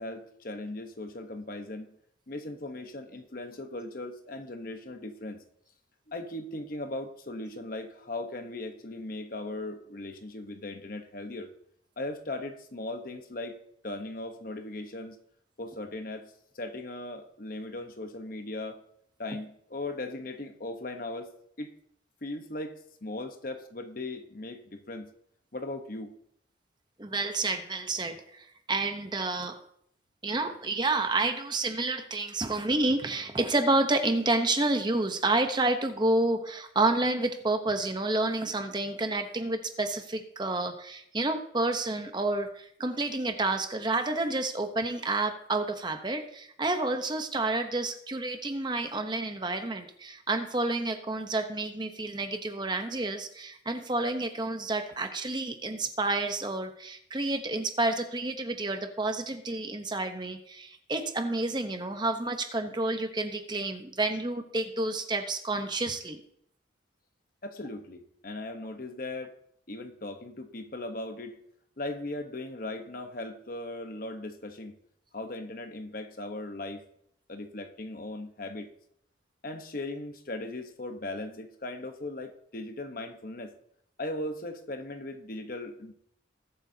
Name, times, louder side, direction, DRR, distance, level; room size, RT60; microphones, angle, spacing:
voice 1, 0.0-2.0 2.3-5.4 6.1-11.5 12.0-13.6 13.8-15.2 15.6-18.8 19.2-21.3 21.6-21.7 22.2-22.7 23.0-25.1 25.5-26.2 67.4-69.3 69.7-71.4 71.8-74.8 75.1-76.8 77.3-78.7 79.4-83.5 84.0-85.9, left 2 dB, 50° left, 7 dB, 1.1 m, -38 dB
voice 2, 27.0-29.6 30.2-66.2, right 2 dB, 25° right, 6 dB, 0.9 m, -29 dB
20.0 x 8.1 x 2.8 m, 0.70 s
head